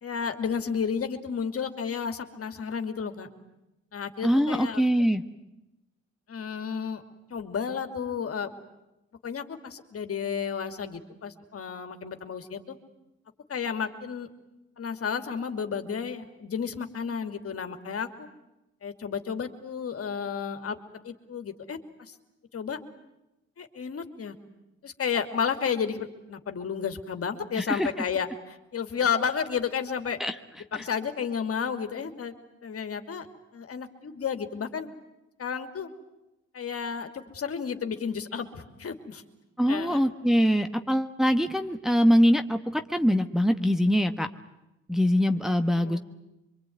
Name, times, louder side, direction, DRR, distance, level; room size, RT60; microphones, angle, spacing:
voice 1, 0.0-3.3 3.9-4.8 6.3-7.0 7.3-8.5 9.2-12.8 13.5-14.3 14.8-18.3 18.8-20.8 21.0-22.1 22.5-22.8 23.6-24.3 24.8-30.2 30.7-32.3 32.6-33.3 33.5-34.9 35.4-35.9 36.5-39.2 39.7-40.0 45.8-46.0, left 6 dB, 50° left, 8 dB, 2.7 m, -32 dB
voice 2, 4.2-5.2 27.6-27.9 30.2-30.3 39.6-44.3 44.9-46.0, equal, ahead, 5 dB, 1.3 m, -23 dB
25.0 x 23.5 x 9.5 m, 0.94 s
cardioid pair, 90°, 30 cm